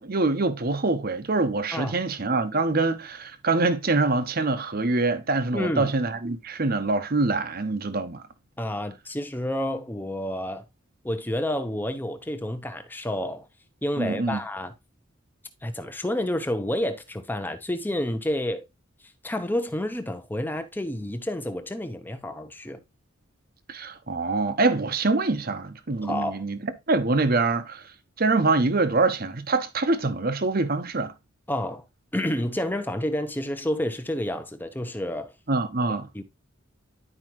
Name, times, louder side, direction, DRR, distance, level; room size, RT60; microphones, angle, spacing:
voice 1, 0.0-8.2 14.0-14.4 23.7-27.8 28.2-31.1 35.5-36.1, right 3 dB, 50° right, 0.9 m, -25 dB
voice 2, 5.5-5.9 8.6-10.6 11.0-13.5 13.8-14.7 15.6-18.6 19.2-22.8 26.0-26.4 31.5-31.8 32.1-35.3 36.1-36.2, left 1 dB, 10° left, 0.8 m, -29 dB
11.0 x 4.9 x 3.0 m
head